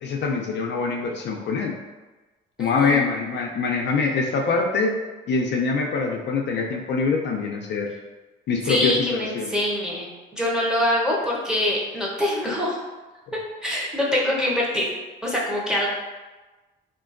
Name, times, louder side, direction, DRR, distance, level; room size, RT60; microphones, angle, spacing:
voice 1, 0.0-1.7 2.6-4.9 5.3-7.9 8.5-9.6, left 4 dB, 65° left, 0 dB, 0.4 m, -24 dB
voice 2, 2.6-3.0 8.6-12.8 13.6-14.9 15.2-15.9, left 1 dB, 5° right, -5 dB, 0.8 m, -24 dB
3.7 x 2.5 x 2.5 m, 1.2 s
cardioid pair, 90°, 20 cm